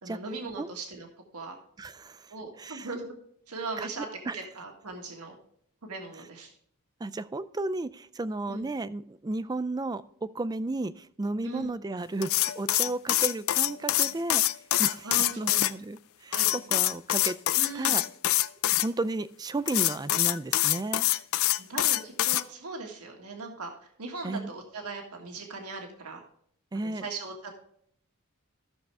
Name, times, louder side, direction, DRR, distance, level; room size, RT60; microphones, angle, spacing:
voice 1, 0.0-1.1 1.3-1.6 2.3-3.2 3.5-4.1 4.3-5.3 5.8-6.5 8.5-8.7 11.4-11.7 15.0-15.6 16.3-16.5 17.5-18.0 21.6-23.7 24.0-26.2 26.7-27.5, right 3 dB, 85° right, 2 dB, 1.8 m, -39 dB
voice 2, 1.8-2.9 3.8-3.9 4.3-4.4 7.0-14.4 14.8-17.4 17.7-18.0 18.7-21.1 24.2-24.5 26.7-27.1, right 2 dB, 15° right, 14 dB, 0.3 m, -33 dB
sound 1, 12.2-15.7 16.3-18.9 19.7-22.4, left 15 dB, 65° left, 0.4 m, -25 dB
14.0 x 6.6 x 3.4 m, 0.67 s
head